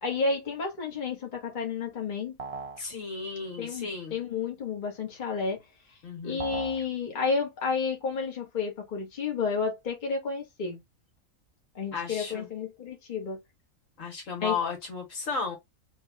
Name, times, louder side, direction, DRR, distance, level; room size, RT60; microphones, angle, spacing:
voice 1, 0.0-2.4 3.6-5.6 5.9-6.0 6.2-10.8 11.7-13.4 14.4-14.6, left 5 dB, 40° left, 1.2 m, -31 dB
sound 1, 2.4-2.9 6.4-6.9, right 4 dB, 50° right, 0.4 m, -37 dB
voice 2, 2.8-4.2 6.0-6.4 11.9-12.5 14.0-15.6, left 4 dB, 70° left, 1.6 m, -34 dB
3.1 x 2.3 x 3.8 m
omnidirectional pair, 1.4 m